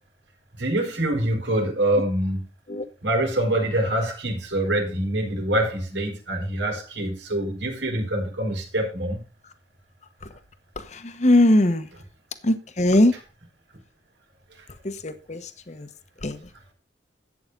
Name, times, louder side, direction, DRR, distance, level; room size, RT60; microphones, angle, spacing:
voice 1, 0.6-2.4 3.0-9.2 13.1-13.2, right 1 dB, 85° right, 2 dB, 4.1 m, -25 dB
voice 2, 11.2-11.8 12.4-13.1 15.0-15.4 16.2-16.3, left 1 dB, 40° left, 11 dB, 1.0 m, -19 dB
12.0 x 8.7 x 3.8 m, 0.32 s
head